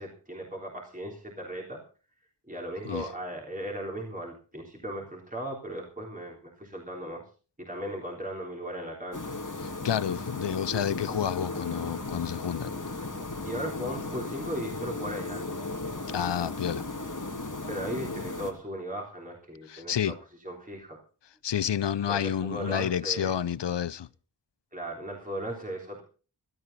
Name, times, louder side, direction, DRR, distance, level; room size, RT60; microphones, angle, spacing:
voice 1, 0.0-1.8 2.5-7.2 7.6-9.3 13.4-15.5 17.7-20.1 20.4-21.0 22.1-23.3 24.7-26.0, right 1 dB, 20° right, 3.6 m, -37 dB
sound 1, 9.1-18.5, left 2 dB, 45° left, 2.3 m, -36 dB
voice 2, 9.8-12.8 16.1-16.8 19.7-20.1 21.4-24.1, left 9 dB, 70° left, 0.6 m, -29 dB
16.5 x 13.0 x 4.1 m
wide cardioid pair, 45°, 43 cm